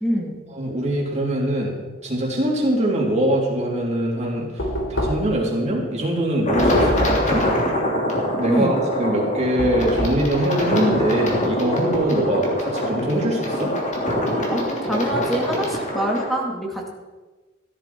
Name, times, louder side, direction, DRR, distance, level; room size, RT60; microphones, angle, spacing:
voice 1, 0.0-0.4 8.5-8.8 14.5-16.9, right 1 dB, ahead, -1 dB, 2.2 m, -25 dB
voice 2, 0.5-1.8 2.0-4.6 4.9-7.5 8.4-13.7, right 1 dB, 35° right, -2 dB, 3.5 m, -23 dB
Knock, 4.6-5.5 6.6-7.3 9.6-10.3, equal, 65° left, 3.2 m, -26 dB
sound 1, 6.4-16.3, equal, 35° left, 3.0 m, -24 dB
14.5 x 13.0 x 4.5 m, 1.2 s
head